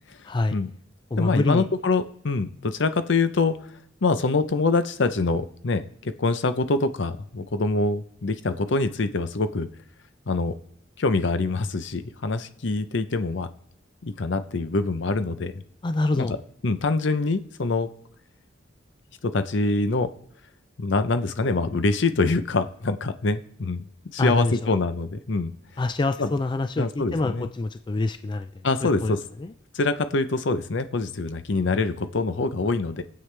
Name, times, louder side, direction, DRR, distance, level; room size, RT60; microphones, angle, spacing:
voice 1, 0.2-0.6 1.1-1.7 15.8-16.3 24.2-24.7 25.8-29.5, left 2 dB, 25° left, 9 dB, 0.3 m, -26 dB
voice 2, 1.2-3.6 4.0-9.7 10.3-10.5 11.0-13.5 14.0-15.5 16.2-16.4 16.6-17.9 19.2-20.1 20.8-23.9 24.1-25.5 26.2-26.3 26.8-27.5 28.6-29.2 29.7-33.0, left 3 dB, 65° left, 11 dB, 0.7 m, -25 dB
21.0 x 7.7 x 3.3 m, 0.68 s
head